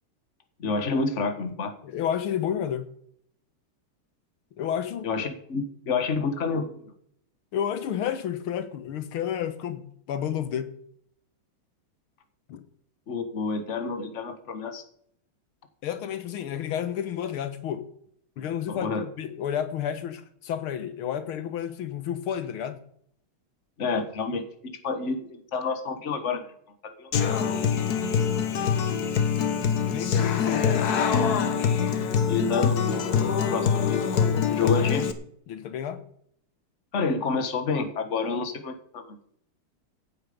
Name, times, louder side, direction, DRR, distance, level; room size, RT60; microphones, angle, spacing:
voice 1, 0.6-1.7 5.0-6.8 13.1-14.8 18.7-19.0 23.8-26.5 26.8-27.4 32.3-34.0 34.5-35.0 36.9-39.2, left 4 dB, 35° left, 8 dB, 1.7 m, -29 dB
voice 2, 1.8-2.9 4.6-5.1 7.5-10.7 12.5-12.6 15.8-17.9 18.4-22.8 29.8-30.9 34.4-34.9 35.5-36.0, left 9 dB, 85° left, 11 dB, 1.9 m, -31 dB
Human voice / Acoustic guitar, 27.1-35.1, left 7 dB, 55° left, 1.5 m, -24 dB
16.5 x 9.2 x 5.3 m, 0.68 s
omnidirectional pair, 2.3 m